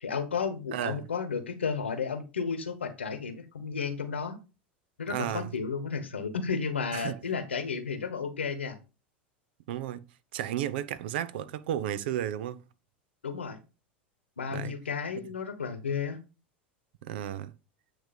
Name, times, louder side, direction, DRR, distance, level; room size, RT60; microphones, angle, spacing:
voice 1, 0.0-4.4 5.0-8.8 13.2-13.6 14.4-16.2, left 5 dB, 85° left, 1.1 m, -33 dB
voice 2, 0.7-1.0 5.1-5.5 6.9-7.2 9.7-10.0 10.3-12.6 14.5-14.7 17.0-17.5, right 11 dB, 60° right, 0.6 m, -33 dB
9.0 x 3.3 x 5.1 m
figure-of-eight pair, 85°, 6 cm